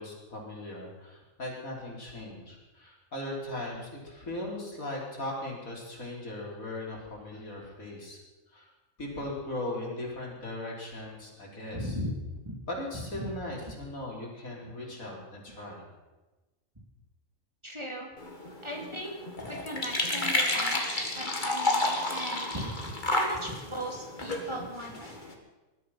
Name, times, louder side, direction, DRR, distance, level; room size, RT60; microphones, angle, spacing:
voice 1, 0.0-8.2 8.5-8.7 9.0-11.9 12.7-15.8, left 1 dB, 80° left, -3 dB, 4.6 m, -38 dB
voice 2, 11.7-12.1 12.4-12.5 13.1-13.3 17.6-18.1 18.6-25.2, equal, 20° right, 0 dB, 2.8 m, -38 dB
sound 1, 18.2-25.3, left 2 dB, 35° left, 2.3 m, -31 dB
20.5 x 12.5 x 5.8 m, 1.1 s
omnidirectional pair, 1.4 m